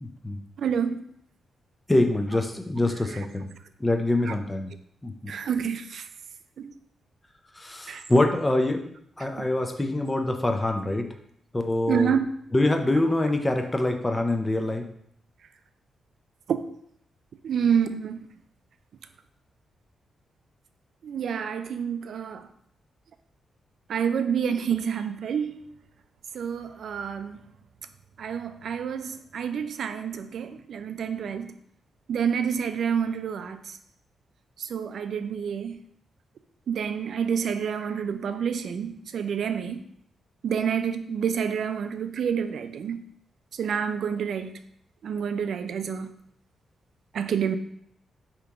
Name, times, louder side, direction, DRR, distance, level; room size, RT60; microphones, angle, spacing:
voice 1, 0.0-0.4 1.9-3.5 3.8-4.7 5.0-5.3 7.5-8.9 9.2-11.1 11.5-12.1 12.5-14.8, left 2 dB, 15° left, 0.5 m, -25 dB
voice 2, 0.6-1.1 3.1-3.3 4.2-4.3 5.3-6.1 6.6-6.7 7.9-8.0 9.4-9.5 11.9-12.3 16.5-16.6 17.4-18.3 21.0-22.5 23.9-25.7 26.3-27.4 28.2-31.6 32.1-33.8 34.6-35.8 36.7-39.8 40.4-43.0 43.5-44.6 45.0-46.1 47.1-47.6, right 7 dB, 65° right, 0.3 m, -28 dB
5.0 x 2.9 x 3.5 m
cardioid pair, 125°, 0 cm